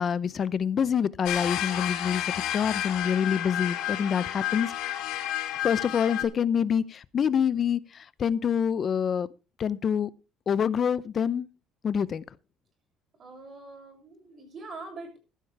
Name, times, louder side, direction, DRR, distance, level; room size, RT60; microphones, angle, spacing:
voice 1, 0.0-4.7 5.6-9.3 9.6-10.1 10.5-11.5 11.8-12.2, left 7 dB, 35° left, 0.6 m, -26 dB
sound 1, 1.2-6.2, left 12 dB, 70° left, 2.5 m, -31 dB
voice 2, 13.2-15.2, right 3 dB, 35° right, 7.1 m, -43 dB
15.0 x 12.0 x 3.4 m
cardioid pair, 150°, 0 cm